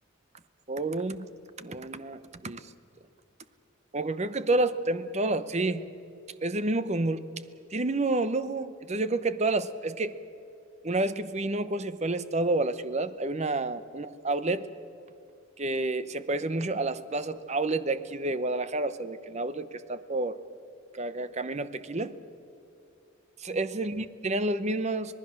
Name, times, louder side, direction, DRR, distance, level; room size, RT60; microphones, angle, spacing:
voice 1, 0.7-1.3 1.6-2.7 3.9-5.8 6.4-7.2 7.7-10.2 10.8-14.7 15.6-20.4 20.9-22.1 23.4-25.2, right 2 dB, 35° right, 13 dB, 0.8 m, -29 dB
26.0 x 19.0 x 6.5 m, 2.6 s
head